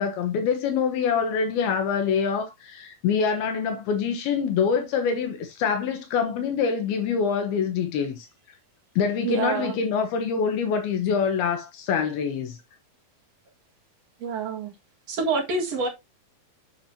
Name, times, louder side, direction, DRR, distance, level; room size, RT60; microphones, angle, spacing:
voice 1, 0.0-8.3 9.0-12.6, left 6 dB, 80° left, 3.0 m, -25 dB
voice 2, 9.2-9.8 14.2-14.7 15.1-15.9, right 4 dB, 50° right, 2.6 m, -26 dB
7.9 x 7.3 x 2.8 m
omnidirectional pair, 4.3 m